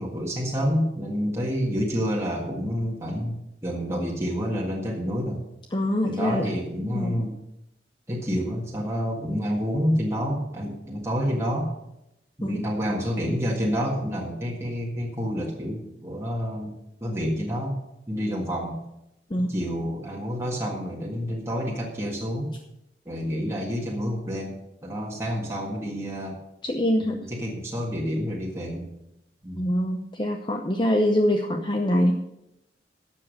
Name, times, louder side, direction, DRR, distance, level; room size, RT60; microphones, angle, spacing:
voice 1, 0.0-3.4 3.6-5.4 6.0-7.3 8.1-11.7 12.4-16.7 17.0-17.8 18.1-18.8 19.5-22.5 23.1-26.4 27.0-28.9 29.4-29.7, equal, 15° right, -3 dB, 1.7 m, -28 dB
voice 2, 5.7-6.4 6.9-7.2 12.4-12.6 19.3-19.5 26.6-27.2 29.6-32.1, left 1 dB, 25° left, 3 dB, 0.7 m, -24 dB
12.0 x 7.3 x 6.4 m, 0.87 s
head